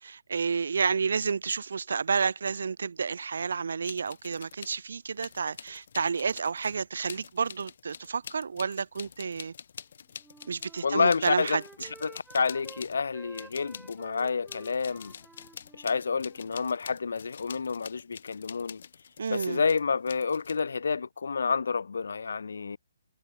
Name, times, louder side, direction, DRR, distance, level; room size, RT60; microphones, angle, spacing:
voice 1, 0.0-9.5 10.5-11.6 19.2-19.6, right 5 dB, 65° right, 2.1 m, -30 dB
sound 1, 3.9-4.8 5.2-13.0 13.3-20.6, left 7 dB, 55° left, 4.0 m, -46 dB
Wind instrument woodwind instrument, 10.1-12.8 13.1-16.8, right 4 dB, 5° right, 6.1 m, -53 dB
voice 2, 10.8-11.6 12.0-15.1 15.7-18.8 19.3-22.8, left 5 dB, 70° left, 2.5 m, -29 dB
hypercardioid pair, 155°, 0 cm